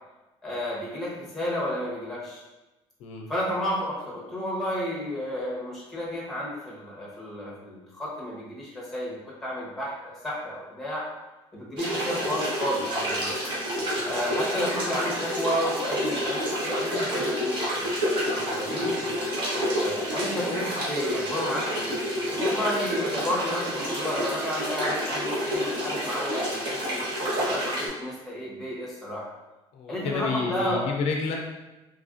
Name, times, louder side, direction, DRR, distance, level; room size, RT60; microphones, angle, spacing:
voice 1, 0.4-2.4 3.3-11.1 11.5-13.3 14.0-17.9 18.3-19.0 19.8-27.0 27.4-29.3 29.9-30.9, equal, ahead, -6 dB, 0.8 m, -32 dB
sound 1, 11.8-27.9, equal, 45° right, 0.9 m, -29 dB
voice 2, 29.7-31.4, left 4 dB, 65° left, 1 dB, 0.4 m, -30 dB
3.1 x 2.4 x 2.5 m, 1.1 s
cardioid pair, 155°, 11 cm